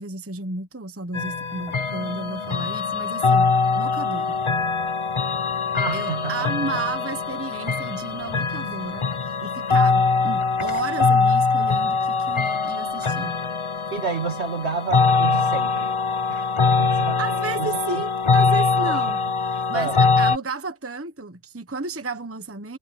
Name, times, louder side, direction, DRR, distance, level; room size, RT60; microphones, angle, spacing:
voice 1, 0.0-4.4 5.9-13.4 17.2-19.2 19.5-22.8, right 3 dB, 10° right, 1.0 m, -32 dB
sound 1, 1.1-20.4, left 4 dB, 30° left, 0.6 m, -22 dB
voice 2, 5.7-6.8 13.9-16.0 16.3-16.5 16.8-17.2 17.6-17.8 18.9-19.0 19.7-20.0, right 4 dB, 55° right, 2.4 m, -29 dB
omnidirectional pair, 1.3 m